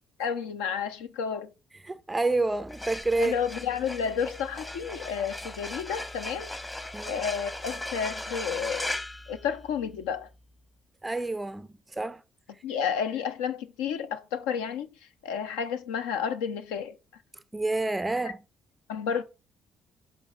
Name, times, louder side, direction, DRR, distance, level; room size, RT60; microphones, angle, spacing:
voice 1, 0.2-1.5 3.2-6.5 7.1-9.0 9.3-10.3 12.6-17.0 18.9-19.2, left 7 dB, 75° left, 0.6 m, -31 dB
voice 2, 1.8-3.3 6.9-7.1 11.0-12.2 17.5-18.4, right 2 dB, 15° right, 0.4 m, -28 dB
sound 1, 2.6-10.0, left 1 dB, 15° left, 0.9 m, -38 dB
6.7 x 5.0 x 3.9 m
figure-of-eight pair, 50°, 0 cm